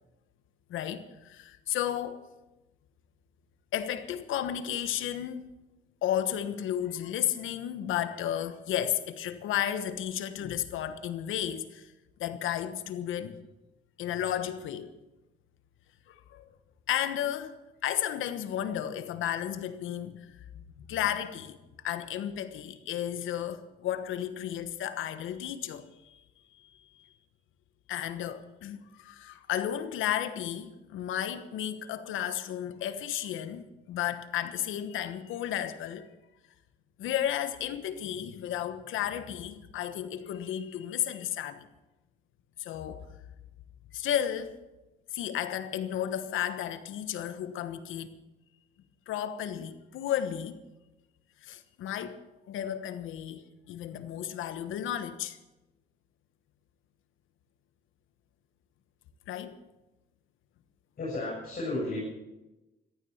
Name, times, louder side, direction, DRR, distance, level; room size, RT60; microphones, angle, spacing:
voice 1, 0.7-2.3 3.7-5.5 6.0-11.9 12.2-13.4 14.0-14.9 16.1-16.5 16.9-21.6 21.8-26.2 26.5-27.1 27.9-36.1 37.0-41.7 42.6-43.1 43.9-44.6 45.1-48.1 49.1-50.6 51.4-52.2 52.5-55.4 59.3-59.6, left 10 dB, 85° left, 1.2 m, -33 dB
voice 2, 61.0-62.0, left 2 dB, 45° left, 7.8 m, -33 dB
14.5 x 13.0 x 7.2 m
cardioid pair, 90°, 20 cm